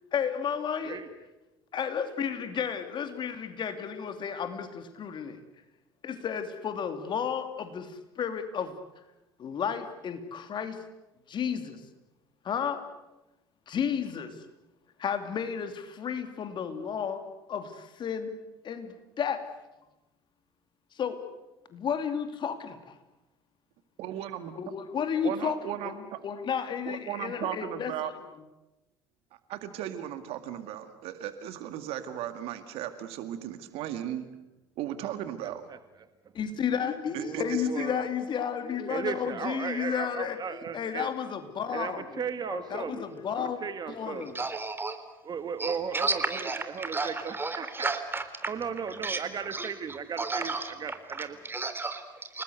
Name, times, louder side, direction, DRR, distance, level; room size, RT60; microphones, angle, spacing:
voice 1, 0.1-1.0 1.7-5.4 6.0-8.8 9.4-10.8 11.3-11.8 12.4-12.8 13.7-14.3 15.0-17.2 17.5-18.3 18.6-19.4 20.9-21.2 21.7-22.8 24.6-28.1 36.3-42.0 42.5-43.6 43.9-44.3, left 7 dB, 45° left, 8 dB, 2.8 m, -32 dB
voice 2, 24.0-24.5 25.2-26.2 26.9-28.1 29.5-34.3 34.8-35.6 37.1-37.6, right 11 dB, 60° right, 9 dB, 2.0 m, -36 dB
voice 3, 37.2-38.1 38.9-41.1 41.7-43.0 43.4-44.4 45.2-47.9 48.4-51.4, right 6 dB, 40° right, 10 dB, 1.8 m, -36 dB
voice 4, 44.3-45.0 45.6-48.3 49.0-49.2 49.5-49.7 50.2-50.7 51.2-52.4, right 3 dB, 20° right, 9 dB, 3.6 m, -32 dB
29.5 x 19.5 x 8.0 m, 1.0 s
hypercardioid pair, 65°, 11 cm